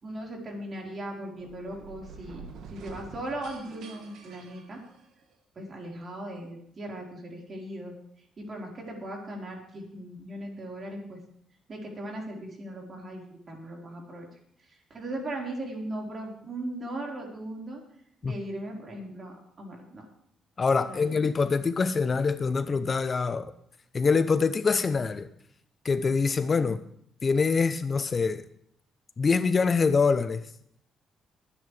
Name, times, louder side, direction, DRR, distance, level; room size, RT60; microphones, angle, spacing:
voice 1, 0.0-2.4 2.7-4.8 5.6-7.9 8.4-11.2 11.7-14.3 14.9-17.8 18.2-20.0 20.8-21.2 26.6-26.7, right 1 dB, 40° right, -1 dB, 4.5 m, -38 dB
sound 1, 1.3-5.4, right 4 dB, 75° right, 1.8 m, -47 dB
voice 2, 20.6-23.5 23.9-25.3 25.8-26.8 27.2-28.4 29.2-30.4, left 5 dB, 35° left, 12 dB, 0.7 m, -24 dB
21.5 x 9.8 x 3.4 m, 0.69 s
cardioid pair, 90°, 0 cm